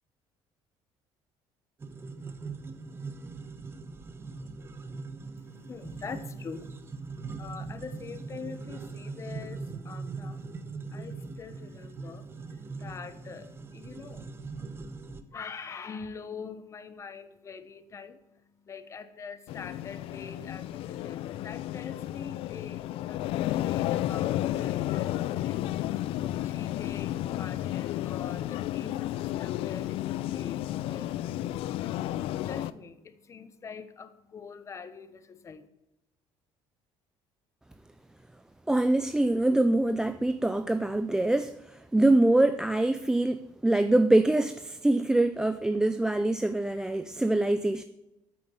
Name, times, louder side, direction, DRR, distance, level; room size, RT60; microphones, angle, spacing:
sound 1, 1.8-15.2, right 4 dB, 25° right, 1.0 m, -41 dB
voice 1, 5.4-35.7, left 5 dB, 30° left, 1.0 m, -45 dB
sound 2, 19.5-32.7, left 14 dB, 70° left, 0.5 m, -32 dB
voice 2, 38.7-47.8, right 2 dB, 5° right, 0.4 m, -24 dB
9.4 x 8.9 x 7.3 m
cardioid pair, 135°, 10 cm